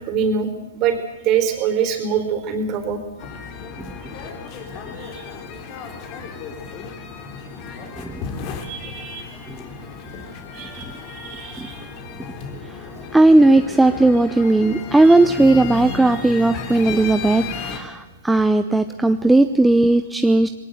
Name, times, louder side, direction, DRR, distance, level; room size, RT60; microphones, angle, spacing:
voice 1, 0.1-0.5 0.7-3.0 5.0-5.2 8.6-9.3 10.5-11.8, right 7 dB, 35° right, 7 dB, 4.1 m, -24 dB
sound 1, 3.2-17.8, left 5 dB, 35° left, 3.5 m, -34 dB
voice 2, 13.1-20.5, right 2 dB, 5° right, 8 dB, 0.7 m, -16 dB
21.0 x 18.0 x 8.0 m, 1.2 s
hypercardioid pair, 125°, 0 cm